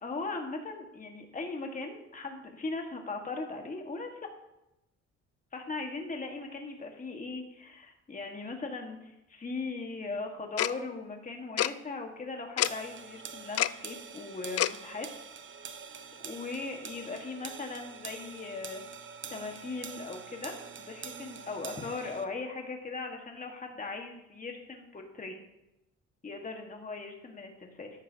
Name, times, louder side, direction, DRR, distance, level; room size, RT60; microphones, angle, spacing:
voice 1, 0.0-4.3 5.5-15.1 15.9-16.0 16.2-18.8 19.3-25.4 26.2-27.9, left 3 dB, 25° left, 3 dB, 1.6 m, -39 dB
Tick-tock, 10.6-10.7 11.6-11.7 12.6-12.7 13.6-13.7 14.6-14.7, left 13 dB, 55° left, 0.4 m, -26 dB
sound 1, 12.6-22.3, right 6 dB, 40° right, 0.9 m, -45 dB
13.0 x 11.0 x 2.8 m, 0.89 s
cardioid pair, 90°, 30 cm